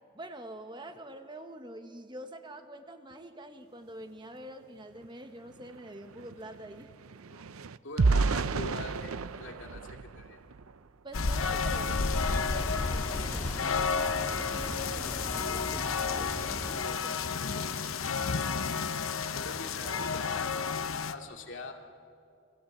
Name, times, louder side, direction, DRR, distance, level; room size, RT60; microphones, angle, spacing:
voice 1, 0.1-6.9 11.0-12.0 12.4-14.0 14.3-17.7 18.0-18.2, right 1 dB, 20° right, 7 dB, 1.1 m, -46 dB
sound 1, 5.0-5.1 5.4-10.9 11.4-11.6 12.0-12.2, right 4 dB, 85° right, 0.6 m, -32 dB
voice 2, 7.8-10.4 19.3-21.7, left 2 dB, 60° left, 2 dB, 2.6 m, -43 dB
sound 2, 11.1-21.1, left 5 dB, 75° left, 1.0 m, -31 dB
sound 3, 11.8-16.9, equal, 10° left, 1.9 m, -40 dB
29.5 x 22.0 x 8.0 m, 2.5 s
head